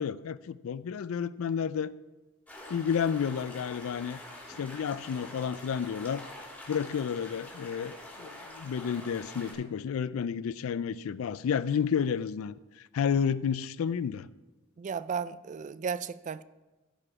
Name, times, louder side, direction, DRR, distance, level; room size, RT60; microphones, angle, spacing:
voice 1, 0.0-1.9 2.7-4.2 4.6-6.3 6.7-12.5 12.9-14.3, left 7 dB, 80° left, 0.4 m, -31 dB
sound 1, 2.5-9.5, left 1 dB, 10° left, 2.6 m, -46 dB
voice 2, 14.8-16.4, right 6 dB, 35° right, 0.3 m, -34 dB
14.5 x 5.0 x 4.8 m
head